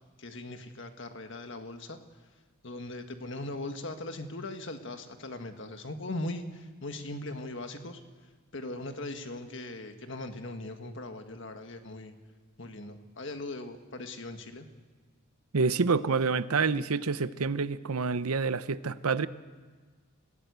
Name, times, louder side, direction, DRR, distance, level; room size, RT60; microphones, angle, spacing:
voice 1, 0.2-2.0 2.6-8.0 8.5-12.1 12.6-14.7, left 2 dB, 55° left, 6 dB, 1.7 m, -39 dB
voice 2, 15.5-19.3, right 4 dB, 85° right, 14 dB, 0.8 m, -27 dB
26.0 x 16.5 x 8.2 m, 1.5 s
head